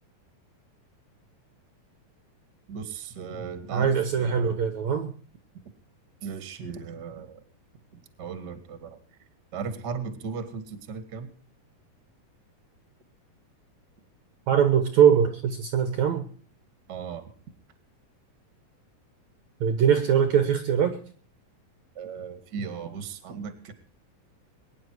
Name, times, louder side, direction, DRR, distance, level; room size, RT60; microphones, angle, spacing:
voice 1, 2.7-4.6 6.2-7.4 7.9-9.0 9.5-11.3 16.9-17.3 21.9-23.7, right 6 dB, 35° right, 10 dB, 2.1 m, -36 dB
voice 2, 3.7-5.1 14.5-16.2 19.6-21.0, right 8 dB, 60° right, 9 dB, 2.3 m, -22 dB
23.0 x 10.5 x 4.6 m, 0.43 s
omnidirectional pair, 4.1 m